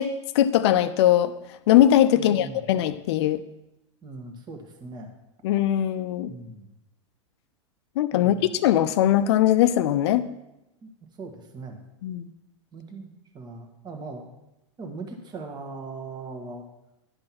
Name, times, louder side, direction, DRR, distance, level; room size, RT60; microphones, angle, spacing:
voice 1, 0.0-1.4 1.7-3.4 5.4-6.3 8.0-10.3 12.0-12.3, left 12 dB, 60° left, 12 dB, 0.6 m, -21 dB
voice 2, 2.1-2.6 4.0-5.1 6.3-6.7 8.1-8.6 10.8-11.8 12.7-14.3 14.8-16.7, right 3 dB, 30° right, 4 dB, 1.6 m, -40 dB
10.5 x 5.3 x 6.0 m, 0.91 s
hypercardioid pair, 105°, 16 cm